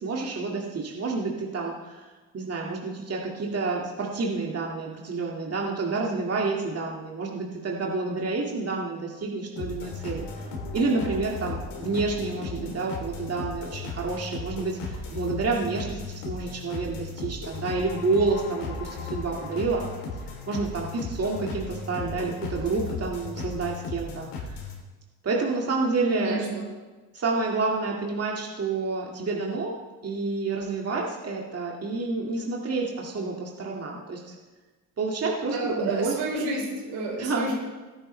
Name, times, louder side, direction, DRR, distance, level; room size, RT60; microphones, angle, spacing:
voice 1, 0.0-10.3 10.7-19.8 20.5-24.6 25.2-26.4 27.1-29.8 30.0-34.3 35.0-36.5 37.2-37.5, right 3 dB, 35° right, -2 dB, 2.1 m, -29 dB
sound 1, 9.6-24.8, left 3 dB, 65° left, 3.2 m, -36 dB
voice 2, 26.2-26.6 35.5-37.5, right 2 dB, 75° right, -2 dB, 4.2 m, -30 dB
17.0 x 9.8 x 3.3 m, 1.3 s
supercardioid pair, 70°, 43 cm